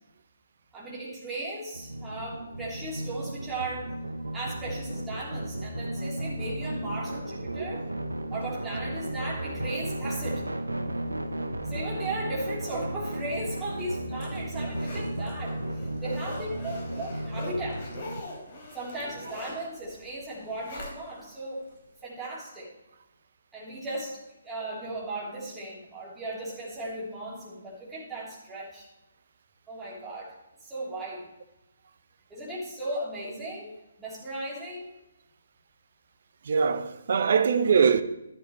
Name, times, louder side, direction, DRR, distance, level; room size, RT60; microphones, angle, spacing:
voice 1, 0.7-3.9 4.3-7.9 8.3-10.4 11.7-15.6 16.0-17.9 18.7-21.6 22.0-22.7 23.5-28.9 29.7-30.3 30.6-31.3 32.3-34.9, right 1 dB, 10° right, 3.4 m, -36 dB
sound 1, 1.7-18.2, right 1 dB, 80° right, 0.9 m, -34 dB
Zipper (clothing), 13.7-21.3 21.7-21.8, left 2 dB, 35° left, 3.7 m, -43 dB
voice 2, 36.4-38.0, right 6 dB, 50° right, 0.8 m, -22 dB
12.5 x 11.5 x 3.2 m
figure-of-eight pair, 140°, 0 cm